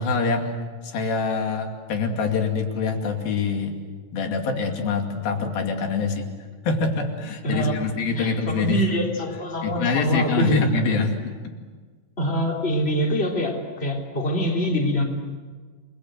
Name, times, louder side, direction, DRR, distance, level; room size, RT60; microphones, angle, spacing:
voice 1, 0.0-3.8 4.1-6.3 6.6-8.8 9.6-11.3, left 4 dB, 85° left, 4 dB, 4.3 m, -25 dB
voice 2, 7.4-10.8 12.2-15.0, equal, 15° left, 1 dB, 3.5 m, -25 dB
29.5 x 22.0 x 7.9 m, 1.5 s
omnidirectional pair, 4.1 m